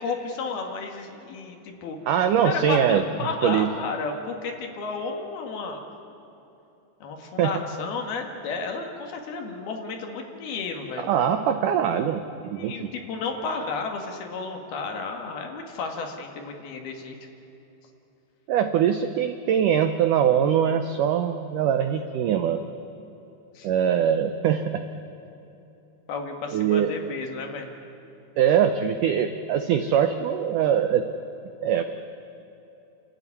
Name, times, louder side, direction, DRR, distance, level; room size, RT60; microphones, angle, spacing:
voice 1, 0.0-2.0 2.4-5.8 7.0-11.1 12.4-17.2 23.6-23.7 26.1-27.7, left 4 dB, 65° left, 3 dB, 3.7 m, -32 dB
voice 2, 2.1-3.0 3.4-3.7 7.4-7.5 11.0-12.9 18.5-22.7 23.6-24.8 26.5-26.9 28.4-31.1 31.6-31.8, right 9 dB, 90° right, 8 dB, 1.8 m, -22 dB
29.5 x 13.0 x 9.7 m, 3.0 s
omnidirectional pair, 4.8 m